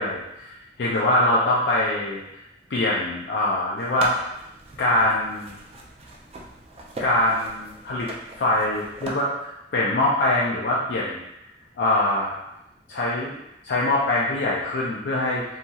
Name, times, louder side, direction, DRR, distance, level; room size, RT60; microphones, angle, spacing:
voice 1, 0.0-2.2 2.7-4.3 4.8-5.6 7.0-8.1 8.4-11.2 11.8-12.3 12.9-13.3 13.6-15.4, left 1 dB, 70° left, -5 dB, 0.4 m, -23 dB
sound 1, 3.8-9.1, right 2 dB, 35° right, 0.3 m, -39 dB
2.7 x 2.7 x 2.3 m, 0.87 s
head